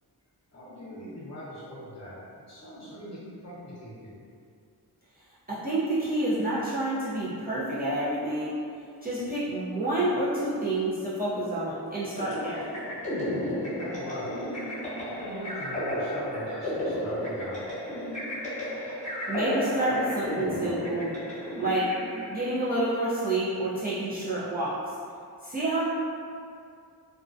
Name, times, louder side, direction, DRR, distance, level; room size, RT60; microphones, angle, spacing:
voice 1, 0.5-2.2 2.5-4.2 13.8-14.4 15.0-17.7, equal, 40° left, -9 dB, 0.9 m, -41 dB
voice 2, 5.5-8.6 9.0-12.7 19.3-21.1 21.6-21.9 22.3-24.8 25.4-25.8, right 1 dB, 25° right, -10 dB, 0.4 m, -28 dB
sound 1, 12.1-22.6, equal, 20° left, 0.7 m, -33 dB
2.4 x 2.1 x 2.5 m, 2.3 s
wide cardioid pair, 115°, 39 cm